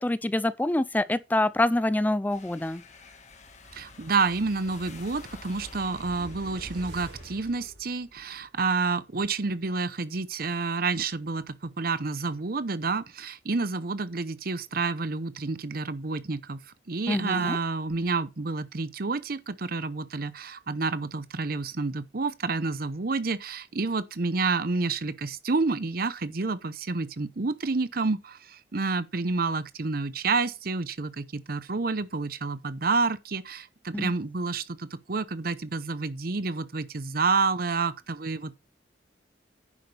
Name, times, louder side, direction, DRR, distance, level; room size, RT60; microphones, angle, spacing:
voice 1, 0.0-2.8 17.1-17.6 33.9-34.1, left 1 dB, 10° left, 0.4 m, -26 dB
sound 1, 2.3-7.7, left 5 dB, 40° left, 1.6 m, -51 dB
sound 2, 3.2-8.5 8.8-8.9, right 1 dB, 85° right, 3.7 m, -47 dB
voice 2, 3.7-16.6 16.9-38.5, right 4 dB, 55° right, 0.8 m, -29 dB
10.0 x 7.9 x 3.4 m
head